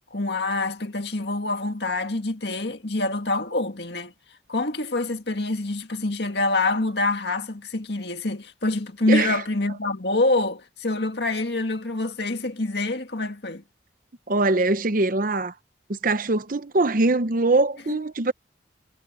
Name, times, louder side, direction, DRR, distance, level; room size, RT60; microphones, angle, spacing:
voice 1, 0.1-4.1 4.5-13.6 17.9-18.0, left 2 dB, 60° left, 2.1 m, -26 dB
voice 2, 9.1-9.4 14.3-15.5 15.9-18.3, right 2 dB, 45° right, 0.8 m, -22 dB
head